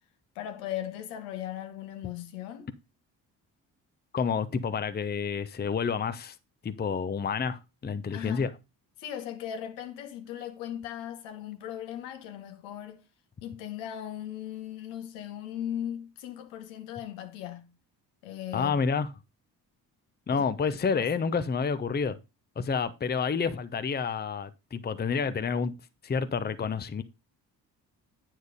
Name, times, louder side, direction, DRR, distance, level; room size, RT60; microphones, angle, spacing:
voice 1, 0.3-2.7 8.1-8.5 9.0-13.0 13.4-17.7 18.2-18.8 20.3-21.3, left 11 dB, 75° left, 1.4 m, -38 dB
voice 2, 4.1-6.4 6.6-8.5 18.5-19.1 20.3-22.2 22.6-25.7 26.0-27.0, left 5 dB, 20° left, 0.8 m, -29 dB
9.4 x 4.6 x 5.0 m
hypercardioid pair, 45°, 49 cm